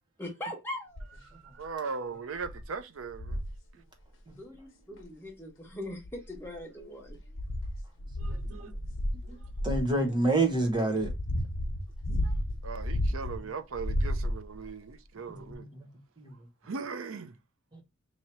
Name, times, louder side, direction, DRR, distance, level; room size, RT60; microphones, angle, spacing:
voice 1, 0.2-1.1 4.3-7.3, left 1 dB, 10° left, 1.2 m, -41 dB
sound 1, 0.9-1.3 1.8-1.9 2.4-2.6 3.1-3.6 5.0-5.1 5.9-6.5 7.0-9.9 10.6-13.4 13.7-14.7 15.5-15.6, left 1 dB, 70° left, 0.9 m, -32 dB
voice 2, 1.3-3.4 8.2-8.7 9.2-9.4 12.2-12.3 12.6-15.7 16.6-17.3, right 5 dB, 85° right, 0.6 m, -39 dB
voice 3, 9.6-11.1 15.3-15.7 16.2-16.3, right 2 dB, 20° right, 0.9 m, -27 dB
2.9 x 2.8 x 4.3 m
head